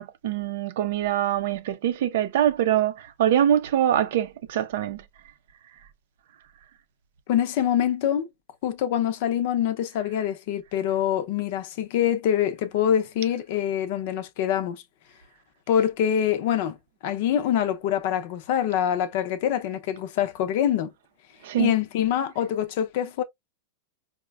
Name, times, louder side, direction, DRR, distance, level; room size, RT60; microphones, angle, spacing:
voice 1, 0.0-5.0 21.4-21.7, right 11 dB, 65° right, 0.5 m, -24 dB
voice 2, 7.3-8.3 8.6-14.8 15.7-16.8 17.0-20.9 21.6-23.2, left 10 dB, 50° left, 0.6 m, -25 dB
4.9 x 2.1 x 2.3 m
supercardioid pair, 155°, 0 cm